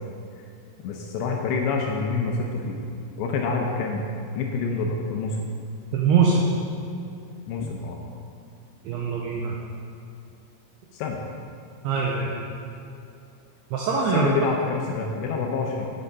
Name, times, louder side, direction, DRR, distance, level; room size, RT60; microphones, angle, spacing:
voice 1, 0.8-2.8 3.2-4.0 4.4-5.5 7.5-8.0 10.9-11.2 14.1-15.9, left 4 dB, 80° left, 1 dB, 2.6 m, -27 dB
voice 2, 5.9-6.4 8.8-9.6 11.8-12.3 13.7-14.3, right 6 dB, 85° right, -2 dB, 2.3 m, -22 dB
8.6 x 6.6 x 5.4 m, 2.6 s
omnidirectional pair, 5.6 m